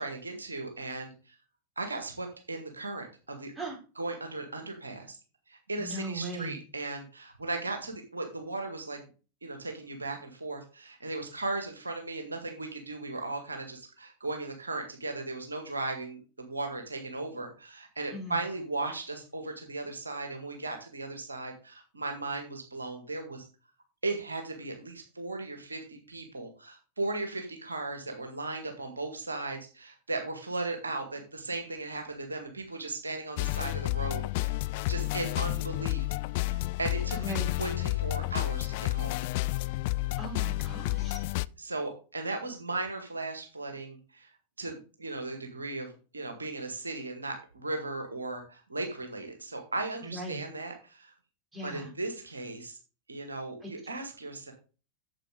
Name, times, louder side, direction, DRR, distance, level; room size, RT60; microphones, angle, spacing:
voice 1, 0.0-1.4 1.8-3.5 4.0-5.2 5.5-9.0 9.4-23.4 24.0-34.6 34.9-36.0 36.5-39.2 41.6-51.1 51.6-52.8 53.1-54.5, right 2 dB, 75° right, 4 dB, 1.9 m, -37 dB
voice 2, 5.8-6.6 18.1-18.4 37.1-37.5 40.2-41.2 50.0-50.4 51.5-51.9 53.6-53.7, right 2 dB, 10° right, 0 dB, 3.9 m, -38 dB
sound 1, 33.4-41.5, left 20 dB, 50° left, 0.3 m, -31 dB
8.9 x 7.5 x 3.9 m, 0.34 s
figure-of-eight pair, 90°, 0 cm